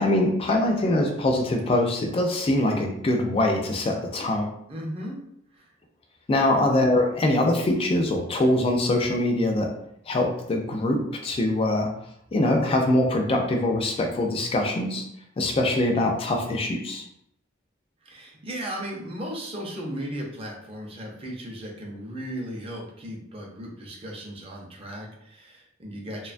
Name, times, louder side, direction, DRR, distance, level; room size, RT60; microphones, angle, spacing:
voice 1, 0.0-4.5 6.3-9.7 10.1-11.9 12.3-15.0 15.4-17.0, left 1 dB, 30° left, 3 dB, 0.3 m, -23 dB
voice 2, 4.7-5.2 5.5-5.7 18.0-26.3, equal, 30° right, -1 dB, 0.5 m, -36 dB
2.8 x 2.2 x 2.4 m, 0.74 s
head